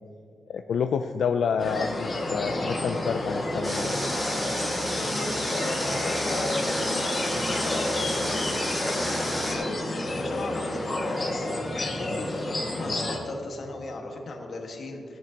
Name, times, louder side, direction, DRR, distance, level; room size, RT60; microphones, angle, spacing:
voice 1, 0.5-4.0, left 6 dB, 80° left, 6 dB, 0.4 m, -28 dB
sound 1, 1.6-13.2, left 1 dB, 25° left, 1.9 m, -30 dB
Water, 3.6-9.5, equal, 10° right, 2.9 m, -32 dB
voice 2, 4.9-6.7 7.0-9.8 10.2-15.2, left 2 dB, 50° left, 1 dB, 1.6 m, -36 dB
17.0 x 10.5 x 2.9 m, 2.3 s
wide cardioid pair, 165°, 0 cm